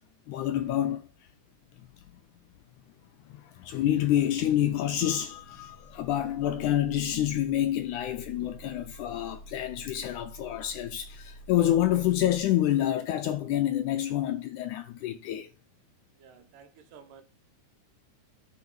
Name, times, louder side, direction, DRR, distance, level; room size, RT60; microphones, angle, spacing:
voice 1, 0.3-1.1 3.3-15.5, left 12 dB, 80° left, 1.8 m, -28 dB
sound 1, 5.0-12.4, right 1 dB, 55° left, 4.2 m, -49 dB
voice 2, 16.2-17.2, right 7 dB, 75° right, 2.6 m, -52 dB
9.5 x 4.5 x 7.1 m
omnidirectional pair, 4.0 m